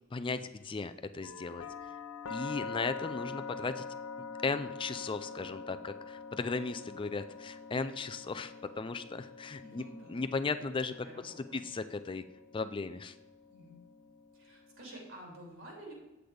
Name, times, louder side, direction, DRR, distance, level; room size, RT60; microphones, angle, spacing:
voice 1, 0.1-2.0 2.3-3.8 4.4-9.8 10.1-10.9 11.2-12.2 12.5-13.1, left 4 dB, 25° left, 10 dB, 0.4 m, -36 dB
sound 1, 1.2-15.1, left 5 dB, 80° left, 0.6 m, -45 dB
voice 2, 9.6-10.3 11.0-11.6 13.5-13.8 14.3-15.9, right 1 dB, 65° right, -1 dB, 3.5 m, -50 dB
8.8 x 7.9 x 5.1 m, 1.1 s
head